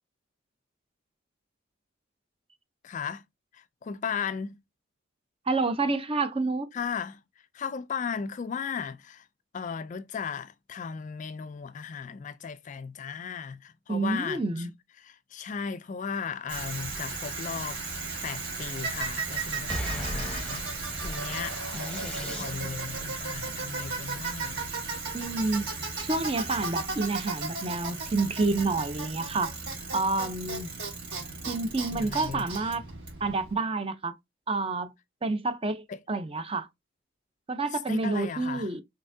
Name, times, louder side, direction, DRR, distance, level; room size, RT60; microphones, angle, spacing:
voice 1, 2.8-3.2 3.5-4.6 6.7-7.2 7.5-9.3 9.5-14.7 15.0-20.6 21.0-24.7 31.9-32.5 35.9-36.0 37.9-38.7, left 6 dB, 40° left, 0.3 m, -36 dB
voice 2, 5.5-6.7 13.9-14.7 25.1-25.6 26.0-29.6 29.9-30.8 31.5-32.8 33.2-34.1 34.5-34.9 35.2-36.7 37.5-38.8, right 3 dB, 25° right, 0.6 m, -29 dB
Bicycle, 16.5-33.5, right 3 dB, 55° right, 3.2 m, -35 dB
sound 1, 19.7-22.9, equal, 5° left, 0.9 m, -38 dB
5.4 x 3.5 x 2.6 m
head